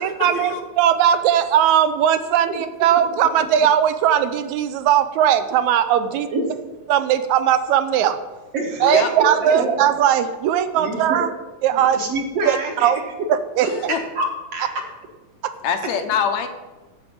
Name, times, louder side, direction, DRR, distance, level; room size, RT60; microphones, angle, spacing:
voice 1, 0.0-6.3 6.9-8.2 8.8-11.3 11.6-12.0 12.5-13.0 13.3-13.7, right 10 dB, 75° right, 11 dB, 1.8 m, -18 dB
voice 2, 8.5-9.0 9.4-9.8 10.7-11.2 11.8-12.9 13.6-13.7 14.2-14.7, right 3 dB, 60° right, 1 dB, 2.1 m, -26 dB
voice 3, 15.6-16.5, left 7 dB, 70° left, 7 dB, 2.0 m, -23 dB
11.5 x 4.9 x 8.4 m, 1.2 s
omnidirectional pair, 3.6 m